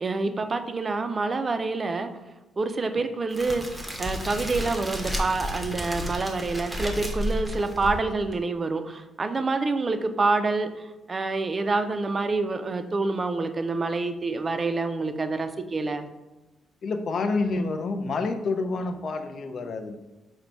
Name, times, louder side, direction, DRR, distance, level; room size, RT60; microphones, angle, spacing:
voice 1, 0.0-2.1 2.6-16.1, right 3 dB, 35° right, 8 dB, 0.4 m, -27 dB
Crackle, 3.3-8.4, equal, 5° right, 0.7 m, -32 dB
voice 2, 16.8-20.0, left 3 dB, 55° left, 7 dB, 0.4 m, -28 dB
3.9 x 2.1 x 4.4 m, 1.0 s
cardioid pair, 90°, 0 cm